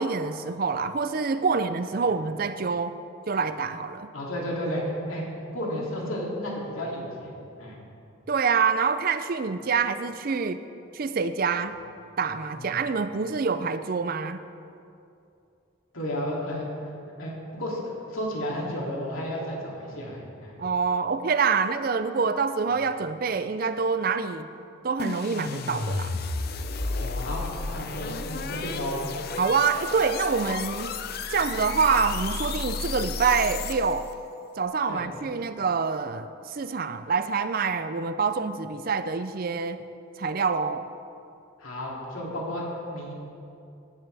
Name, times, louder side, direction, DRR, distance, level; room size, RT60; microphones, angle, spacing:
voice 1, 0.0-3.0 3.3-4.1 8.3-10.6 10.9-11.8 12.2-14.4 20.6-24.5 24.8-26.1 29.4-30.9 31.3-34.1 34.6-39.8 40.2-40.8, right 5 dB, 45° right, 11 dB, 0.4 m, -26 dB
voice 2, 4.1-5.2 5.5-7.3 7.6-7.8 12.5-12.8 15.9-16.9 17.2-17.8 18.1-20.6 26.8-29.0 34.9-35.0 41.6-42.6 42.9-43.1, equal, 85° left, -3 dB, 2.8 m, -32 dB
sound 1, 25.0-34.1, left 3 dB, 50° left, 0.5 m, -32 dB
16.5 x 10.5 x 3.4 m, 2.6 s
head